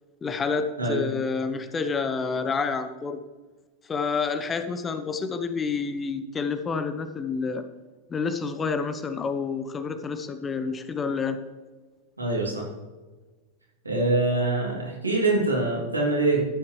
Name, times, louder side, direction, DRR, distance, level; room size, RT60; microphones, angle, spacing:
voice 1, 0.2-3.2 3.9-7.6 8.1-11.4, left 5 dB, 20° left, 9 dB, 0.8 m, -28 dB
voice 2, 12.2-12.6 13.8-16.4, right 2 dB, 80° right, -2 dB, 3.0 m, -24 dB
13.5 x 8.7 x 3.2 m, 1.3 s
figure-of-eight pair, 90°, 0 cm